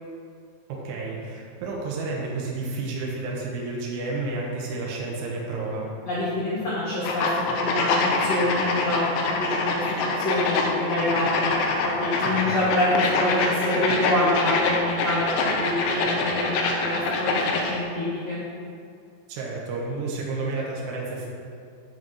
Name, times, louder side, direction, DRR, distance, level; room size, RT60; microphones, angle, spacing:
voice 1, 0.7-5.9 12.2-12.5 19.3-21.3, right 3 dB, 85° right, -3 dB, 1.7 m, -31 dB
voice 2, 6.0-9.8 10.2-18.4, left 1 dB, 65° left, -9 dB, 1.6 m, -26 dB
sound 1, 7.0-17.8, left 3 dB, 85° left, 2.9 m, -25 dB
7.3 x 5.3 x 5.5 m, 2.3 s
omnidirectional pair, 5.1 m